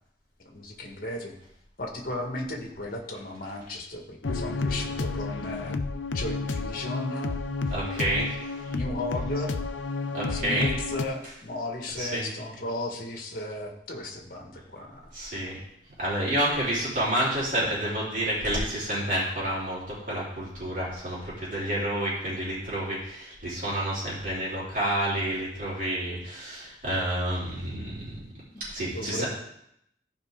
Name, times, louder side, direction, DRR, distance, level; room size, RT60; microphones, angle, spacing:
voice 1, 0.4-1.3 1.8-5.7 6.1-7.4 8.7-9.5 10.3-15.1 28.5-28.6 28.9-29.2, left 2 dB, 50° left, 2 dB, 1.6 m, -35 dB
sound 1, 4.2-11.1, left 3 dB, 85° left, 0.7 m, -31 dB
voice 2, 7.7-8.4 10.1-10.7 12.0-12.3 15.1-15.6 16.0-28.2 28.7-29.3, right 1 dB, 45° right, -6 dB, 3.8 m, -29 dB
13.5 x 5.4 x 3.7 m, 0.74 s
head